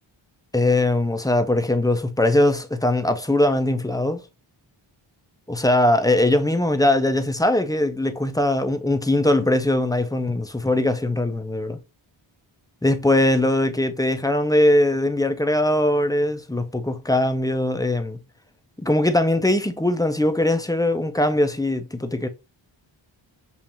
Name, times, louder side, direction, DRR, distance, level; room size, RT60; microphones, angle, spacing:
voice 1, 0.5-4.2 5.5-11.8 12.8-18.2 18.8-22.3, left 1 dB, 10° left, 0.4 m, -21 dB
7.0 x 2.4 x 2.9 m
wide cardioid pair, 115°, 49 cm